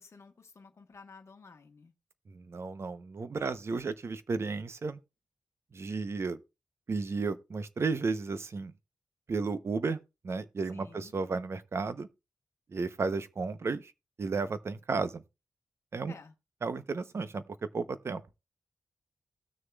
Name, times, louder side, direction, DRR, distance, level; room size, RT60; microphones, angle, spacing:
voice 1, 0.0-1.9 10.7-11.1 16.1-16.3, left 4 dB, 45° left, 1.2 m, -53 dB
voice 2, 2.3-5.0 5.7-6.4 6.9-8.7 9.3-10.0 10.2-12.1 12.7-13.9 14.2-15.2 15.9-16.1 16.6-17.4 17.7-18.2, right 4 dB, 45° right, 0.7 m, -33 dB
18.0 x 6.5 x 2.3 m
wide cardioid pair, 140°, 6 cm